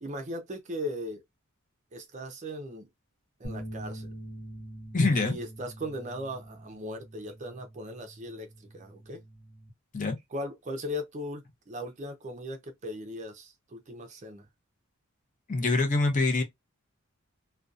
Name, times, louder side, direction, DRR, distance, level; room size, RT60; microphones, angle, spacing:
voice 1, 0.0-1.2 1.9-2.9 3.4-4.1 5.1-9.2 10.3-14.5, equal, 35° right, 0.5 m, -38 dB
sound 1, 3.4-9.7, right 1 dB, 65° left, 0.8 m, -44 dB
voice 2, 4.9-5.4 9.9-10.2 15.5-16.4, left 3 dB, 35° left, 0.6 m, -24 dB
2.6 x 2.2 x 2.3 m
head